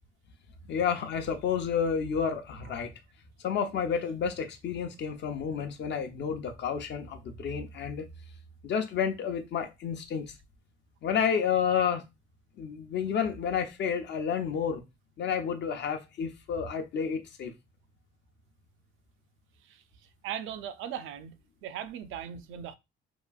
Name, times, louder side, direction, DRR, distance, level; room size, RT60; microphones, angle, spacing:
voice 1, 0.6-2.9 3.4-8.1 8.6-10.3 11.0-12.1 12.6-14.8 15.2-17.5, left 7 dB, 65° left, 0.6 m, -30 dB
voice 2, 20.2-21.3 21.6-22.7, right 9 dB, 80° right, 0.4 m, -38 dB
2.9 x 2.5 x 2.3 m
cardioid pair, 90°, 20 cm